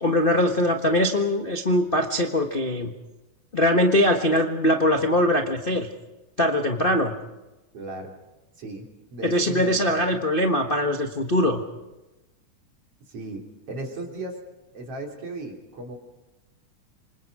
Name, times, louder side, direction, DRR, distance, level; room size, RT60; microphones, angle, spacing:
voice 1, 0.0-2.9 3.5-5.9 6.4-7.1 9.2-11.6, left 1 dB, 50° left, 2 dB, 0.6 m, -22 dB
voice 2, 7.7-8.1 8.6-10.2 13.1-13.4 13.7-14.4 14.7-16.0, right 2 dB, 50° right, 0 dB, 4.3 m, -36 dB
29.0 x 26.0 x 4.9 m, 1.1 s
omnidirectional pair, 3.6 m